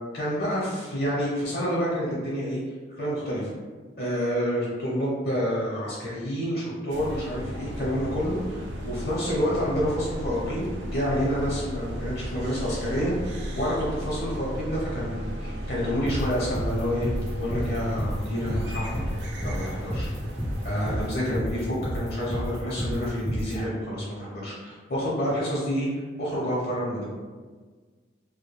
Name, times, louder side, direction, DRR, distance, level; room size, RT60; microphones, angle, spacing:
voice 1, 0.1-2.6 3.0-3.5 4.0-19.0 19.4-20.1 20.6-27.1, equal, 55° left, -6 dB, 0.7 m, -28 dB
sound 1, 6.9-21.1, equal, 75° right, 0.4 m, -35 dB
sound 2, 16.1-23.5, equal, 5° left, 0.4 m, -30 dB
2.3 x 2.1 x 3.0 m, 1.4 s
head